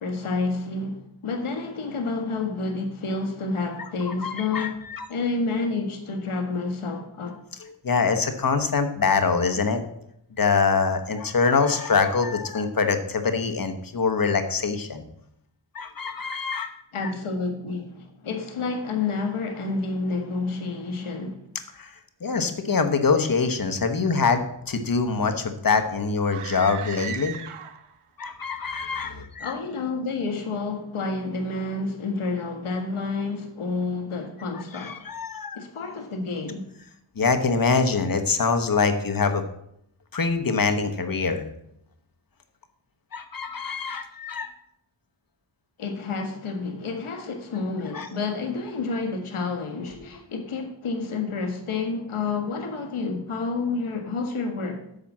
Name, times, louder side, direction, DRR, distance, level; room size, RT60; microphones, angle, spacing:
voice 1, 0.0-4.8 5.1-7.4 16.9-21.4 29.4-35.0 35.5-36.7 45.8-54.8, left 3 dB, 80° left, 1.6 m, -29 dB
voice 2, 4.1-5.1 7.6-9.8 10.4-15.0 15.7-16.7 17.0-17.1 21.8-21.9 22.2-27.4 28.2-29.5 34.7-35.6 37.2-39.4 40.1-41.4 43.1-44.5 47.9-48.1 50.0-50.1, left 4 dB, 45° left, 1.1 m, -24 dB
sound 1, 26.2-28.0, right 9 dB, 90° right, 0.9 m, -37 dB
8.9 x 5.0 x 7.3 m
wide cardioid pair, 95°, 49 cm